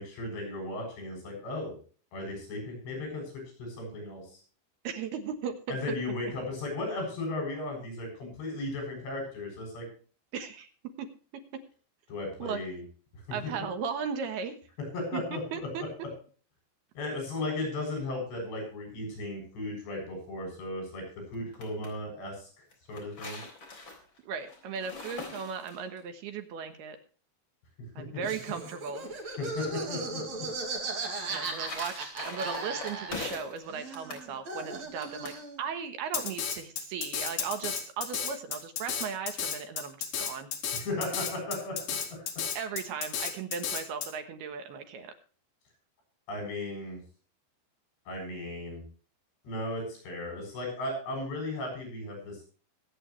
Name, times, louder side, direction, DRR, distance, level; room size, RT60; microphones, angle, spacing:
voice 1, 0.0-1.8 2.1-3.3 3.6-4.4 5.7-9.9 12.1-12.8 13.3-13.5 14.9-15.7 16.9-21.0 21.3-23.4 29.4-30.5 40.7-42.2 46.3-47.0 48.1-48.9 49.4-52.5, left 2 dB, 75° left, 2 dB, 9.9 m, -36 dB
voice 2, 4.8-5.8 10.3-10.7 11.0-11.1 12.4-12.6 13.3-14.6 15.1-15.2 15.5-15.8 24.3-27.0 28.0-29.1 31.3-35.3 35.6-40.5 42.6-45.1, right 6 dB, 70° right, 8 dB, 3.0 m, -37 dB
sound 1, 21.3-21.9 22.7-26.0 31.1-33.6 33.9-34.3 35.0-35.4, left 3 dB, 30° left, 4.1 m, -42 dB
Laughter, 28.2-33.4 33.7-35.6, right 3 dB, 45° right, 3.2 m, -37 dB
Drum kit, 36.1-44.1, left 7 dB, 60° left, 3.7 m, -33 dB
23.0 x 9.0 x 3.2 m, 0.40 s
omnidirectional pair, 5.1 m